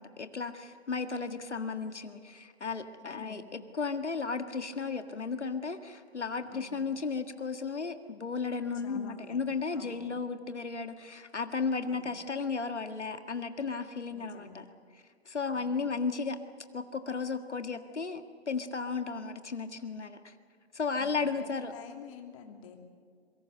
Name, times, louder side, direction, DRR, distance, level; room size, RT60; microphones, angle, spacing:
voice 1, 0.0-14.6 14.9-16.4 16.7-20.3 20.7-21.7, left 4 dB, 90° left, 7 dB, 1.8 m, -34 dB
voice 2, 3.0-3.6 6.5-6.8 8.8-9.4 9.7-10.1 11.8-12.1 14.1-14.6 15.5-15.8 19.2-19.4 21.0-22.8, left 7 dB, 30° left, 4 dB, 2.8 m, -49 dB
26.0 x 23.5 x 6.7 m, 2.2 s
figure-of-eight pair, 145°, 34 cm